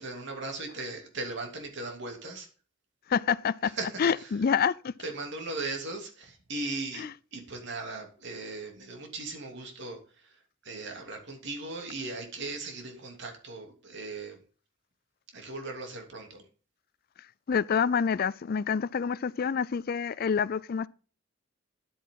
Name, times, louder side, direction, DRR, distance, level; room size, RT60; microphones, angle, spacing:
voice 1, 0.0-2.5 3.6-4.3 5.0-7.1 7.3-14.4 15.3-16.4, right 3 dB, 60° right, 2.8 m, -38 dB
voice 2, 3.1-3.7 4.0-4.9 7.0-7.1 17.5-20.9, left 6 dB, 50° left, 0.4 m, -27 dB
10.0 x 8.6 x 3.8 m
head